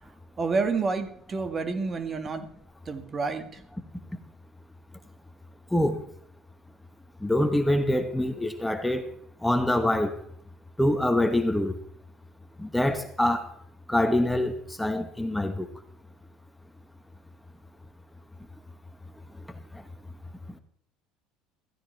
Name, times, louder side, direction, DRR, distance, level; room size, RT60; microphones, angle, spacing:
voice 1, 0.4-2.5 2.9-3.6, right 4 dB, 30° right, 1.9 m, -29 dB
voice 2, 5.7-6.0 7.2-9.1 9.4-10.2 10.8-11.8 12.6-13.5 13.9-15.7, left 1 dB, 5° left, 1.3 m, -25 dB
15.0 x 15.0 x 3.4 m
hypercardioid pair, 75°, 0 cm